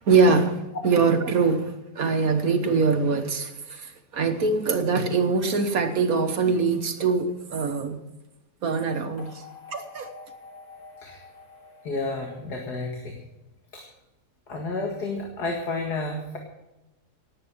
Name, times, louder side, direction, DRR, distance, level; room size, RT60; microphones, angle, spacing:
voice 1, 0.1-8.0 8.6-9.4 9.7-10.1, right 4 dB, 60° right, 7 dB, 1.6 m, -23 dB
sound 1, 9.2-13.4, left 4 dB, 50° left, 3.9 m, -48 dB
voice 2, 11.8-13.2 13.7-13.8 14.5-16.4, left 3 dB, 75° left, 1 dB, 2.5 m, -31 dB
18.5 x 8.7 x 6.1 m, 1.0 s
omnidirectional pair, 1.7 m